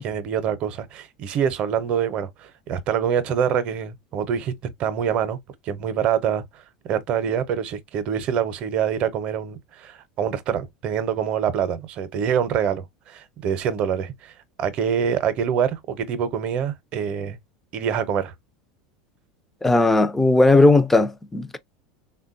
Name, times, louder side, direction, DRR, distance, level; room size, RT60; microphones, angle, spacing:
voice 1, 0.0-4.5 4.8-5.4 5.6-6.6 6.9-14.3 14.6-17.4 17.7-18.3, right 8 dB, 50° right, 0.7 m, -25 dB
voice 2, 19.6-21.6, left 2 dB, 10° left, 0.4 m, -17 dB
3.5 x 2.2 x 2.5 m
hypercardioid pair, 90°, 2 cm